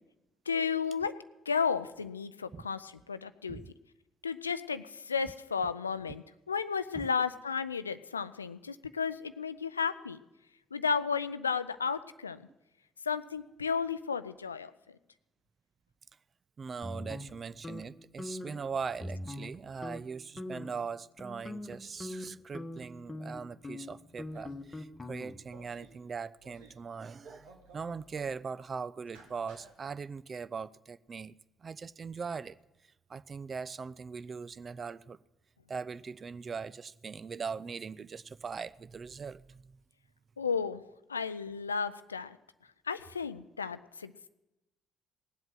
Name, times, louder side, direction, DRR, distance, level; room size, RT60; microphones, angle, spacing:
voice 1, 0.5-1.1 1.5-3.6 4.2-10.2 10.7-12.4 13.1-14.7 40.4-40.8 41.1-42.4 42.9-44.1, left 6 dB, 85° left, 0.4 m, -33 dB
voice 2, 16.6-32.6 32.8-35.2 35.7-39.8, right 5 dB, 40° right, 0.4 m, -41 dB
sound 1, 16.8-17.9 18.2-18.6 19.0-19.6 19.8-20.0 20.4-20.8 21.2-25.5, left 1 dB, 20° left, 1.3 m, -42 dB
sound 2, 24.2-24.7 25.4-25.9 26.4-26.8 27.1-28.4 29.0-29.7, right 3 dB, 70° right, 1.9 m, -56 dB
18.5 x 7.9 x 7.5 m
figure-of-eight pair, 45°, 0 cm